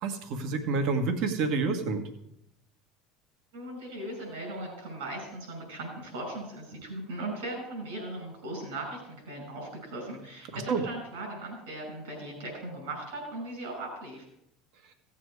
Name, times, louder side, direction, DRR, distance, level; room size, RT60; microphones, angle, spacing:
voice 1, 0.0-2.1 10.5-10.8, right 4 dB, 65° right, 6 dB, 1.6 m, -28 dB
voice 2, 3.5-14.2, right 1 dB, 85° right, 1 dB, 5.5 m, -38 dB
15.5 x 7.7 x 4.9 m, 0.81 s
supercardioid pair, 100°, 0 cm